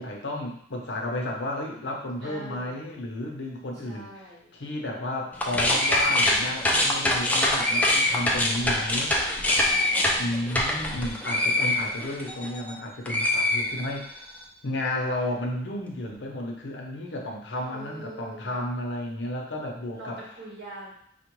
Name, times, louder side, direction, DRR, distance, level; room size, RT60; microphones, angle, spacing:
voice 1, 0.0-9.2 10.2-14.2 14.6-20.2, left 1 dB, 75° left, 0 dB, 0.7 m, -32 dB
voice 2, 2.2-2.7 3.8-4.5 8.6-9.0 9.9-10.4 17.7-18.6 19.9-20.9, right 2 dB, 60° right, -4 dB, 1.3 m, -43 dB
sound 1, 5.3-12.7 13.0-14.2, left 1 dB, 10° left, 0.4 m, -24 dB
4.3 x 2.4 x 3.0 m, 0.68 s
head